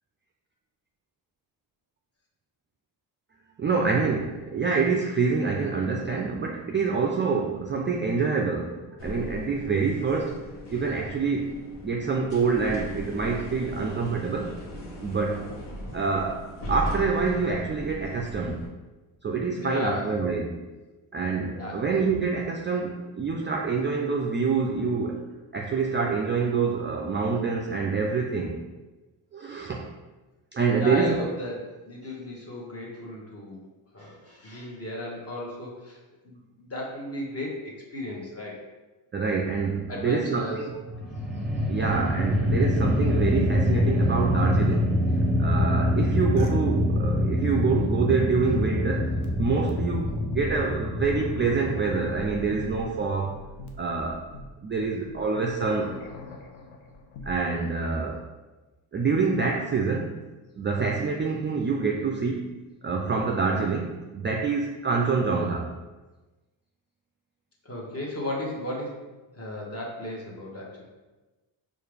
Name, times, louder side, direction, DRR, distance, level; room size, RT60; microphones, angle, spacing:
voice 1, 3.6-10.4 10.7-14.6 15.0-15.5 15.9-18.6 19.2-20.6 21.1-25.2 25.5-28.6 29.3-29.9 30.5-31.1 39.1-40.8 41.7-45.0 45.4-53.4 53.8-54.2 54.6-55.9 57.2-58.3 58.9-60.2 60.6-65.7, right 4 dB, 25° right, 0 dB, 0.4 m, -26 dB
sound 1, 9.0-18.7, left 1 dB, 55° left, 1.2 m, -38 dB
voice 2, 19.6-20.2 21.5-21.8 30.7-33.6 33.9-36.0 36.2-38.6 39.9-40.7 41.7-41.8 67.6-69.0 69.3-70.8, left 1 dB, 30° left, -2 dB, 1.3 m, -35 dB
sound 2, 40.8-53.1, left 1 dB, ahead, 0.9 m, -25 dB
sound 3, 46.4-46.5 47.0-57.4, left 2 dB, 85° left, 0.7 m, -41 dB
4.6 x 2.5 x 3.3 m, 1.2 s
cardioid pair, 75°, 48 cm